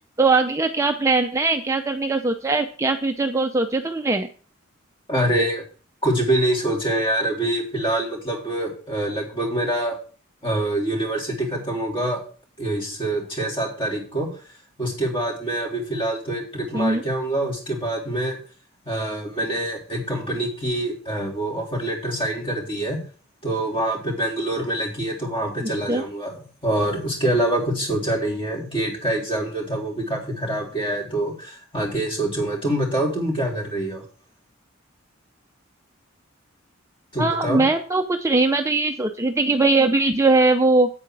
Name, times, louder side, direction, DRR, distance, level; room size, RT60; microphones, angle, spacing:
voice 1, 0.2-4.3 16.7-17.0 25.6-26.0 37.2-40.9, right 3 dB, 15° right, 5 dB, 0.6 m, -20 dB
voice 2, 5.1-5.6 6.0-10.0 10.4-12.2 12.6-14.3 14.8-18.4 18.9-23.0 23.4-34.0 37.1-37.7, right 1 dB, 25° left, -1 dB, 3.7 m, -25 dB
8.7 x 8.5 x 4.7 m, 0.40 s
head